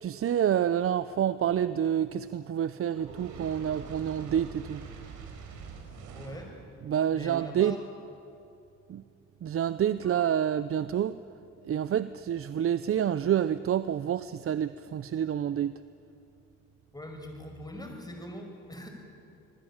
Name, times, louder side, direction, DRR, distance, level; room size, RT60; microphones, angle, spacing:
voice 1, 0.0-4.8 6.8-7.8 8.9-9.0 9.4-11.2 11.7-15.8, right 9 dB, 45° right, 14 dB, 0.6 m, -28 dB
Fire, 2.9-6.6, right 5 dB, 85° right, 4.3 m, -44 dB
voice 2, 6.1-6.5 7.1-7.8 10.0-10.2 16.9-18.9, left 1 dB, 15° left, 3 dB, 5.7 m, -42 dB
26.0 x 20.5 x 8.9 m, 2.7 s
cardioid pair, 90°, 30 cm